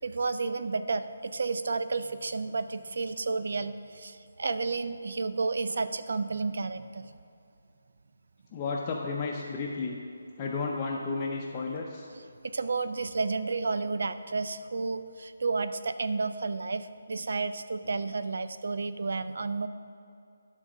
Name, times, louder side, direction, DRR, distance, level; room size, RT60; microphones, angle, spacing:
voice 1, 0.0-7.2 12.4-19.7, right 4 dB, 65° right, 11 dB, 0.4 m, -31 dB
voice 2, 8.5-10.0 10.4-12.1, left 4 dB, 20° left, -2 dB, 0.5 m, -32 dB
11.0 x 4.0 x 6.0 m, 2.5 s
hypercardioid pair, 170°, 0 cm